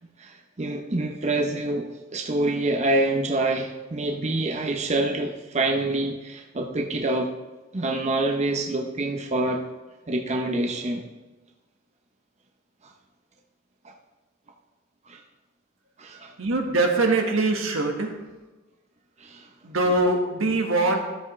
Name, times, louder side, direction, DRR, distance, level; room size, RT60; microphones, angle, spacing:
voice 1, 0.2-7.3 7.7-9.6 10.1-11.1 15.1-15.2 16.0-16.3 19.2-19.5, right 2 dB, 35° right, 2 dB, 0.7 m, -26 dB
voice 2, 16.4-18.1 19.6-21.0, right 2 dB, 85° right, 2 dB, 1.4 m, -22 dB
13.5 x 7.7 x 3.1 m, 1.2 s
head